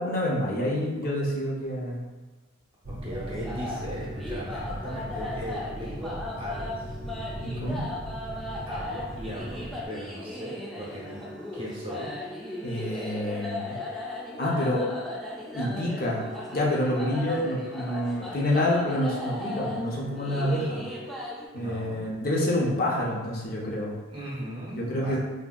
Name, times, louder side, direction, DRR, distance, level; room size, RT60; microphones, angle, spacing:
voice 1, 0.0-2.0 7.4-7.8 12.6-13.8 14.4-14.9 15.5-16.2 16.5-20.8 21.5-23.9 24.8-25.2, left 1 dB, 45° left, -3 dB, 0.6 m, -27 dB
sound 1, 2.8-9.9, equal, 70° right, 0.6 m, -38 dB
voice 2, 3.0-6.8 7.1-7.7 8.3-12.1 21.6-22.0 24.1-25.2, equal, 25° right, -7 dB, 0.7 m, -39 dB
sound 2, 3.1-21.5, left 2 dB, ahead, 0.3 m, -37 dB
3.4 x 2.6 x 2.3 m, 1.2 s
head